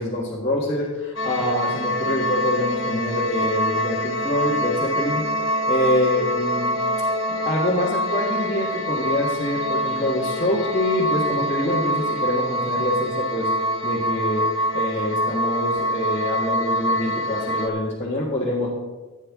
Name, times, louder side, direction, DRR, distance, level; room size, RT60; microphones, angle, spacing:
voice 1, 0.0-5.2 5.7-6.7 7.4-13.5 13.8-14.5 14.7-18.7, left 1 dB, 30° left, -8 dB, 1.7 m, -25 dB
sound 1, 1.2-17.7, equal, 55° left, 0.9 m, -25 dB
14.5 x 9.2 x 3.7 m, 1.2 s
head